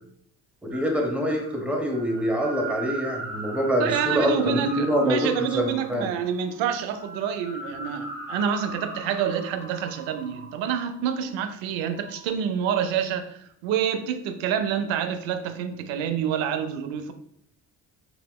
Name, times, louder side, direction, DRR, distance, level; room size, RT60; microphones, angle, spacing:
voice 1, 0.6-5.3 5.5-6.1, equal, 5° right, 1 dB, 0.8 m, -25 dB
sound 1, 0.7-11.3 11.8-12.3, right 1 dB, 30° right, 0.9 m, -39 dB
voice 2, 3.8-17.1, right 8 dB, 70° right, 8 dB, 0.6 m, -27 dB
3.4 x 2.8 x 2.2 m, 0.67 s
hypercardioid pair, 60°, 49 cm